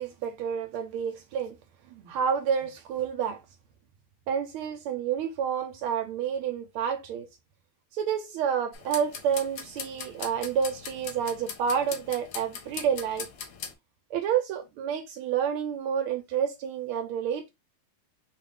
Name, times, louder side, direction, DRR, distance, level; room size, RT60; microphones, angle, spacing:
voice 1, 0.0-1.6 1.9-3.4 4.3-7.3 7.9-13.3 14.1-17.5, right 8 dB, 85° right, 1.5 m, -29 dB
sound 1, 8.7-13.7, left 6 dB, 80° left, 0.8 m, -40 dB
3.8 x 2.4 x 3.4 m
omnidirectional pair, 2.3 m